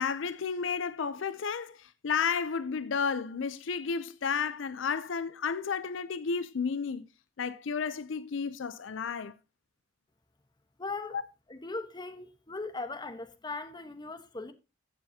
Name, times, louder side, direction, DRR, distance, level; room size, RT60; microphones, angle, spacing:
voice 1, 0.0-7.1 7.4-9.3 11.1-11.2, left 6 dB, 70° left, 0.5 m, -32 dB
voice 2, 10.8-11.2 11.5-14.5, left 3 dB, 25° left, 1.1 m, -39 dB
15.0 x 7.2 x 2.8 m
head